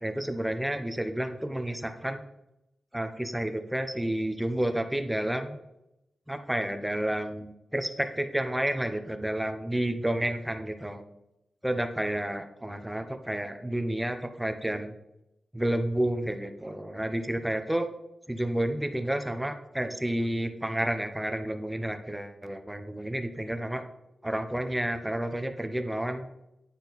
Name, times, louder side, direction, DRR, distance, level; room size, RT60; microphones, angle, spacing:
voice 1, 0.0-2.2 2.9-5.6 6.3-11.0 11.6-14.9 15.5-17.9 18.3-23.8 24.2-26.3, right 1 dB, 5° right, 8 dB, 0.6 m, -30 dB
9.8 x 4.3 x 4.0 m, 0.87 s
wide cardioid pair, 130°, 0 cm